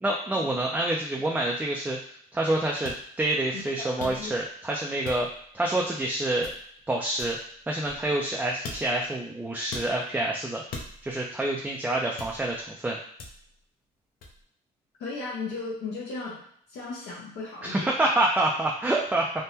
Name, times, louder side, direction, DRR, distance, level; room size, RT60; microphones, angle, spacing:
voice 1, 0.0-5.3 5.5-6.5 6.9-7.4 7.7-10.6 11.0-13.0 17.6-19.3, right 1 dB, 10° right, -2 dB, 0.4 m, -27 dB
sound 1, 2.8-3.0 4.0-4.5 5.0-5.5 6.4-6.8 7.2-8.3 8.6-9.1 9.7-9.9 10.7-11.2 12.2-12.6 13.2-13.6 14.2-14.4, left 3 dB, 60° left, 0.7 m, -41 dB
voice 2, 3.5-4.3 15.0-16.4 16.7-17.9, left 3 dB, 80° left, -6 dB, 1.0 m, -36 dB
3.5 x 2.1 x 2.8 m, 0.62 s
cardioid pair, 110°, 17 cm